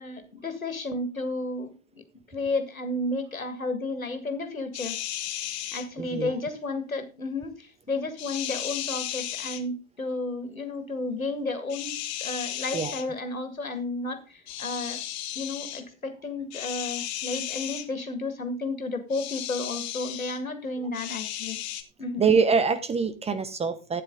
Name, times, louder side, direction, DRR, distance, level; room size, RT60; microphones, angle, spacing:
voice 1, 0.0-1.7 2.3-4.9 5.7-15.0 15.4-21.6 22.0-22.2, left 2 dB, 90° left, 9 dB, 1.9 m, -32 dB
sound 1, 4.7-5.9 8.2-9.6 11.7-13.1 14.5-15.8 16.5-17.9 19.1-20.4 20.9-21.8, left 12 dB, 50° left, 1.6 m, -34 dB
voice 2, 6.0-6.4 12.7-13.1 22.2-24.0, right 5 dB, 15° right, 12 dB, 0.8 m, -25 dB
12.0 x 9.3 x 3.8 m, 0.33 s
figure-of-eight pair, 90°, 40 cm